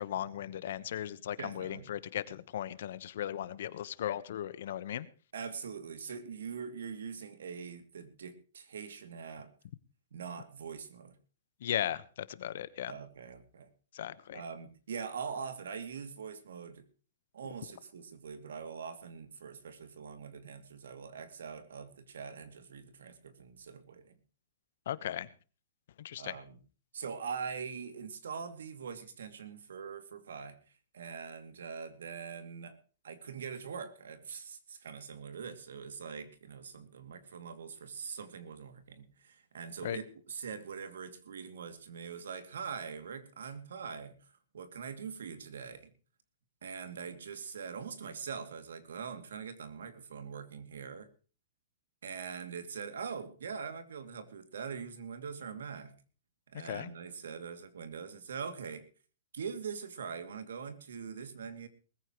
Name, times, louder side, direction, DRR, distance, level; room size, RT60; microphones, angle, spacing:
voice 1, 0.0-5.1 11.6-13.0 13.9-14.4 24.9-25.3 26.0-26.4 39.8-40.0 56.6-56.9, left 11 dB, 55° left, 16 dB, 1.1 m, -37 dB
voice 2, 1.4-1.9 5.3-9.5 10.1-11.2 12.9-13.7 14.3-16.8 17.3-24.2 26.2-26.6 26.9-30.6 30.9-32.8 33.0-44.2 44.5-45.9 46.6-51.1 52.0-55.9 56.5-58.9 59.3-61.7, right 6 dB, 85° right, 10 dB, 2.6 m, -43 dB
20.5 x 15.0 x 3.1 m, 0.38 s
hypercardioid pair, 170°, 0 cm